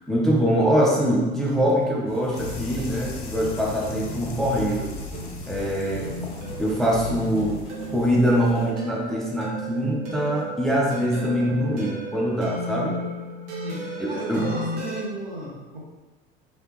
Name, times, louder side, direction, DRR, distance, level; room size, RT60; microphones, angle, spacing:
voice 1, 0.1-4.9 5.5-6.1 6.6-7.6 7.9-13.0 14.0-14.5, equal, ahead, -3 dB, 0.5 m, -23 dB
sound 1, 1.5-15.0, right 1 dB, 50° right, 0.9 m, -35 dB
sound 2, 2.1-8.7, equal, 20° left, 1.1 m, -43 dB
sound 3, 2.3-8.1, left 3 dB, 55° left, 0.7 m, -37 dB
voice 2, 5.9-6.3 13.6-13.8 14.1-15.9, right 1 dB, 80° right, -4 dB, 0.9 m, -35 dB
3.2 x 2.8 x 2.9 m, 1.2 s
figure-of-eight pair, 70°, 30 cm